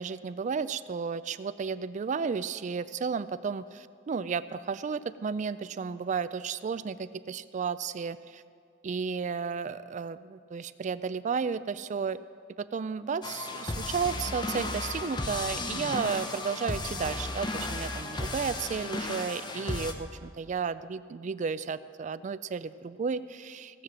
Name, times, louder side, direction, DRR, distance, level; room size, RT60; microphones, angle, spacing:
voice 1, 0.0-8.4 8.8-12.2 12.6-23.8, right 5 dB, 40° right, 15 dB, 0.3 m, -33 dB
sound 1, 13.2-19.9, left 2 dB, 25° left, 0.8 m, -34 dB
17.5 x 7.5 x 6.2 m, 2.1 s
head